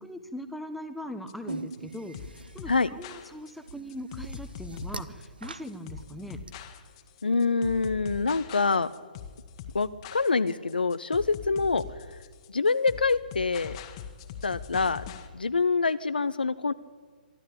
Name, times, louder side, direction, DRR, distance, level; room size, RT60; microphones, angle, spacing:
voice 1, 0.0-6.4, equal, ahead, 8 dB, 1.2 m, -40 dB
sound 1, 1.3-15.3, left 8 dB, 35° left, 1.6 m, -42 dB
sound 2, 1.5-6.5, right 3 dB, 80° right, 1.0 m, -41 dB
voice 2, 7.2-8.9 9.7-11.8 12.5-13.8 14.4-15.0 15.3-16.7, left 4 dB, 80° left, 12 dB, 0.7 m, -25 dB
24.0 x 12.5 x 8.7 m, 1.5 s
figure-of-eight pair, 130°, 5 cm